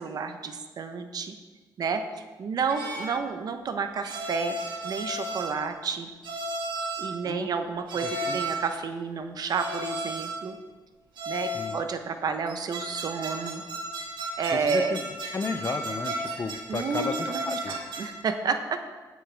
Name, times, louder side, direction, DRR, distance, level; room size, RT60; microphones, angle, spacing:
voice 1, 0.0-1.3 1.8-2.0 2.4-4.6 4.8-6.1 7.0-10.6 11.3-13.6 14.4-15.0 16.7-19.0, right 5 dB, 55° right, 7 dB, 0.8 m, -30 dB
sound 1, 2.7-3.2 4.0-5.7 6.2-7.2 7.9-8.7 9.5-10.5 11.2-11.9 12.5-18.2, right 1 dB, 75° right, 1.8 m, -34 dB
voice 2, 8.0-8.4 11.5-11.8 14.5-15.0 15.3-17.7, left 4 dB, 35° left, 9 dB, 0.6 m, -33 dB
16.0 x 6.4 x 3.5 m, 1.3 s
cardioid pair, 140°, 8 cm